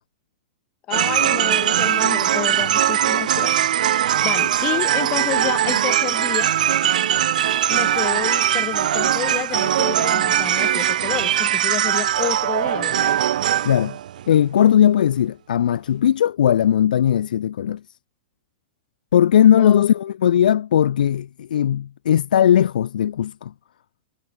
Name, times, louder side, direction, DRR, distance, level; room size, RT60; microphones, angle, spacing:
voice 1, 0.9-6.5 7.7-13.2 19.6-19.8, left 15 dB, 20° left, 7.0 m, -30 dB
sound 1, 0.9-14.7, right 11 dB, 65° right, 1.3 m, -20 dB
voice 2, 13.6-14.0 14.3-17.8 19.1-23.5, left 10 dB, 75° left, 4.1 m, -18 dB
supercardioid pair, 170°, 5 cm